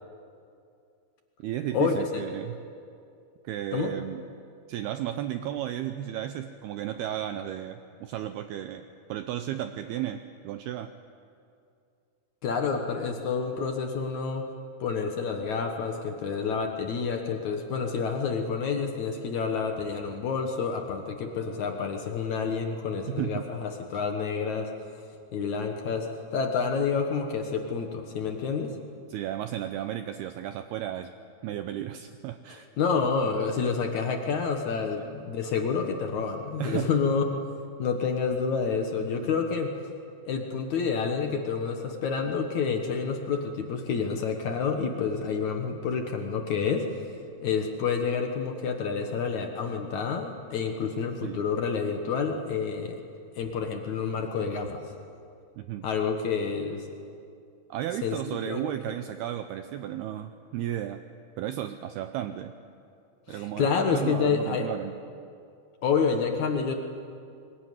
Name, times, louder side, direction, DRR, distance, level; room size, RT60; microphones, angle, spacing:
voice 1, 1.4-2.6 3.4-4.2 4.7-8.8 9.1-10.9 23.1-23.5 29.1-31.1 31.4-32.7 36.6-37.0 51.2-51.4 55.6-55.9 57.7-61.0 61.4-62.5 63.3-65.0, right 12 dB, 85° right, 9 dB, 2.2 m, -34 dB
voice 2, 12.4-14.4 14.8-24.7 25.3-28.7 32.8-37.2 37.8-39.7 40.3-46.9 47.4-53.0 53.4-54.9 55.8-56.9 58.0-58.2 58.4-58.6 63.3-64.7 65.8-66.7, left 5 dB, 70° left, 4 dB, 1.7 m, -28 dB
23.5 x 20.5 x 9.5 m, 2.5 s
omnidirectional pair, 5.4 m